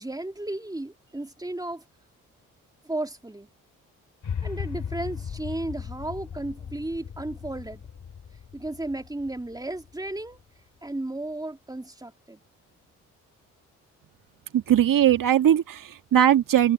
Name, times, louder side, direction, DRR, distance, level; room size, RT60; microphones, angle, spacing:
voice 1, 0.0-1.8 2.8-3.5 4.4-7.8 8.5-10.4 10.8-12.4, right 2 dB, 10° right, 2.5 m, -34 dB
sound 1, 4.2-10.4, left 7 dB, 50° left, 3.2 m, -37 dB
voice 2, 14.5-16.7, right 10 dB, 60° right, 1.8 m, -20 dB
hypercardioid pair, 45°, 37 cm